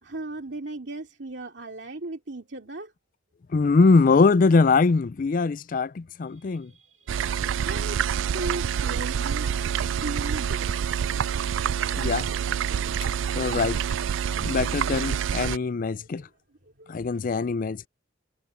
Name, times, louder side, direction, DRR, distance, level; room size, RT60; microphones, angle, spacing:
voice 1, 0.0-2.9 6.2-7.4 7.6-9.6 10.0-10.7 12.6-13.2 16.1-16.3 16.6-17.1, right 2 dB, 65° right, 2.6 m, -38 dB
voice 2, 3.5-6.7 12.0-12.3 13.3-13.8 14.4-16.3 16.9-17.9, left 4 dB, 45° left, 0.4 m, -22 dB
sound 1, 7.1-15.6, right 8 dB, 80° right, 0.3 m, -27 dB
head